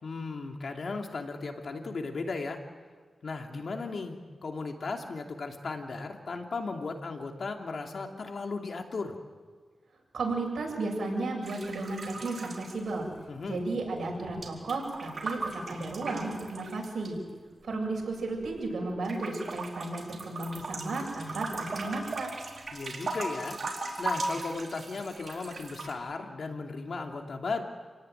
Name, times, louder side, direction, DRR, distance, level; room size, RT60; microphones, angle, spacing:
voice 1, 0.0-2.6 3.2-9.1 13.3-13.6 22.7-27.6, left 4 dB, 70° left, 3 dB, 2.8 m, -36 dB
voice 2, 10.1-13.1 13.5-17.2 17.6-22.3, right 2 dB, 80° right, 0 dB, 7.7 m, -34 dB
sound 1, 11.4-13.5 13.7-17.1 17.7-18.7 19.1-25.9, right 2 dB, 65° right, 4.3 m, -38 dB
28.5 x 18.0 x 9.3 m, 1.5 s
wide cardioid pair, 80°, 0 cm